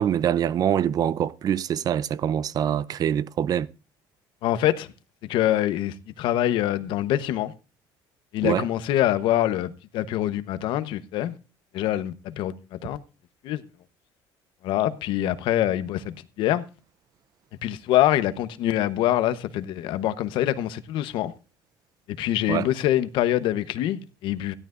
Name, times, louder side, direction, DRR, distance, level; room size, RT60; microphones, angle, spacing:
voice 1, 0.0-3.7 8.4-8.7 22.5-22.7, right 9 dB, 45° right, 0.6 m, -24 dB
voice 2, 4.4-4.9 5.3-7.5 8.3-11.3 11.7-13.0 13.4-13.6 14.6-16.6 17.6-21.3 22.2-24.5, left 13 dB, 75° left, 1.0 m, -25 dB
16.5 x 12.5 x 2.5 m
cardioid pair, 115°, 9 cm